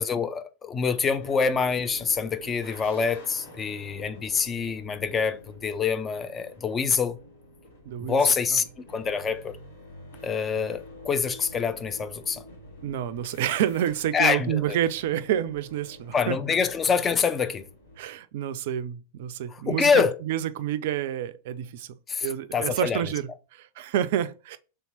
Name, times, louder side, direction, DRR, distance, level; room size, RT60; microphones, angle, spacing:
voice 1, 0.0-7.2 8.0-9.6 10.2-12.4 14.1-14.8 16.1-17.7 19.5-20.2 22.1-23.0, left 5 dB, 20° left, 0.4 m, -26 dB
sound 1, 1.1-18.0, left 1 dB, 65° left, 1.1 m, -48 dB
voice 2, 7.9-8.2 12.8-16.4 18.0-21.9 22.2-24.6, right 11 dB, 55° right, 0.3 m, -28 dB
3.3 x 2.9 x 4.0 m
figure-of-eight pair, 90°, 0 cm